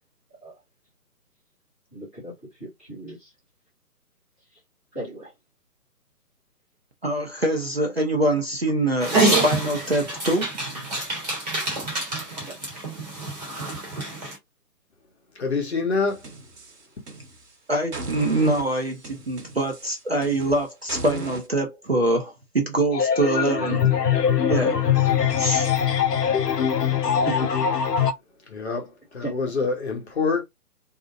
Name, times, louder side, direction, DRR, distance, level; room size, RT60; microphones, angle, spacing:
voice 1, 1.9-3.3 4.5-4.6 4.9-5.3 12.3-12.6 27.2-27.5 29.2-29.3, right 2 dB, 5° left, 0.7 m, -36 dB
voice 2, 7.0-10.9 17.7-23.9 24.5-25.0 25.4-25.8, right 1 dB, 45° right, 0.4 m, -24 dB
Dog, 9.0-14.3, right 2 dB, 25° right, 0.8 m, -26 dB
voice 3, 15.4-16.3 28.5-30.4, left 4 dB, 45° left, 0.8 m, -26 dB
sound 1, 16.1-17.5 17.9-21.5, right 2 dB, 80° right, 1.0 m, -37 dB
sound 2, 22.9-28.1, left 8 dB, 90° left, 0.5 m, -22 dB
2.6 x 2.0 x 2.5 m
figure-of-eight pair, 140°, 47 cm